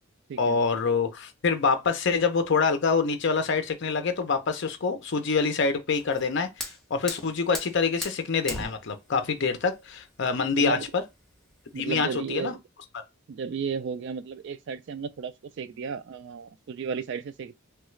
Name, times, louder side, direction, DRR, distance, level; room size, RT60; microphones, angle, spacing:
voice 1, 0.4-6.5 6.9-11.0 11.8-12.5, left 5 dB, 55° left, 0.5 m, -26 dB
Fire, 6.0-11.9, left 1 dB, ahead, 0.6 m, -40 dB
voice 2, 10.5-10.9 11.7-12.6 13.3-17.5, right 6 dB, 55° right, 0.3 m, -34 dB
3.1 x 2.3 x 3.1 m
head